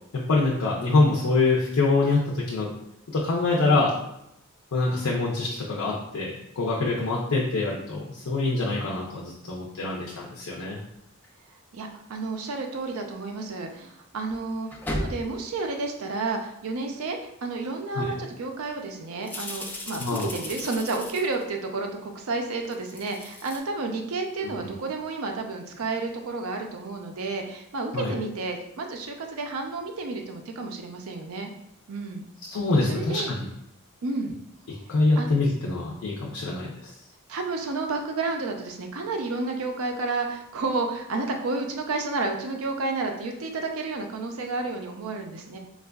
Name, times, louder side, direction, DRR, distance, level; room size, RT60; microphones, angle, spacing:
voice 1, 0.1-2.7 3.1-3.9 4.7-10.8 18.0-18.1 20.0-20.3 24.4-24.7 27.9-28.1 32.4-33.5 34.9-36.9, left 3 dB, 85° left, -3 dB, 0.5 m, -25 dB
sound 1, 11.2-11.3 12.9-13.0 14.3-15.5 17.5-17.6 18.1-18.3 19.2-21.5 22.6-23.6, left 1 dB, 10° left, 0.3 m, -36 dB
voice 2, 11.7-31.5 31.9-32.2 32.8-33.3 34.0-34.4 35.2-35.3 37.3-45.6, right 3 dB, 75° right, 3 dB, 0.5 m, -31 dB
4.4 x 2.3 x 2.2 m, 0.80 s
head